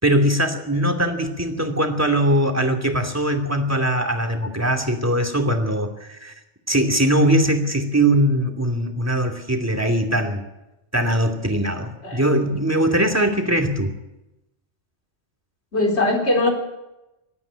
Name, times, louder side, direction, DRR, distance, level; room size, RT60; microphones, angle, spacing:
voice 1, 0.0-6.3 6.7-10.4 10.9-13.9, right 1 dB, 15° right, 2 dB, 2.7 m, -21 dB
voice 2, 15.7-16.5, left 2 dB, 70° left, 1 dB, 4.5 m, -20 dB
20.0 x 13.5 x 9.9 m, 0.97 s
omnidirectional pair, 1.1 m